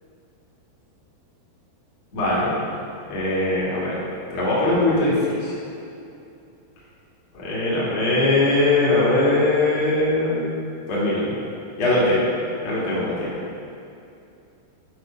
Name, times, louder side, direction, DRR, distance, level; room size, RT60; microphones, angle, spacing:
voice 1, 2.1-2.5 3.1-4.0 4.3-5.5 7.3-10.5 10.9-11.3 11.8-12.3 12.6-13.4, left 2 dB, 35° left, -8 dB, 2.6 m, -21 dB
10.5 x 5.9 x 5.9 m, 2.6 s
omnidirectional pair, 5.4 m